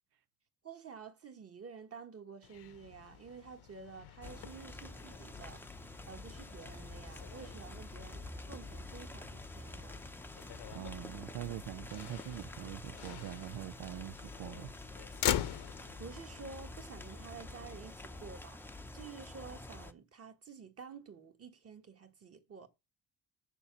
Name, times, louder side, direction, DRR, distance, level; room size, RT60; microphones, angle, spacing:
voice 1, 0.6-5.6 6.1-10.0 16.0-18.6 18.9-22.7, right 5 dB, 35° right, 1.6 m, -50 dB
Motor vehicle (road), 2.4-18.3, left 12 dB, 75° left, 0.9 m, -44 dB
sound 1, 4.2-19.9, left 2 dB, 5° left, 0.6 m, -48 dB
voice 2, 10.7-15.1, right 14 dB, 70° right, 0.5 m, -44 dB
6.9 x 6.7 x 7.1 m
cardioid pair, 130°, 40 cm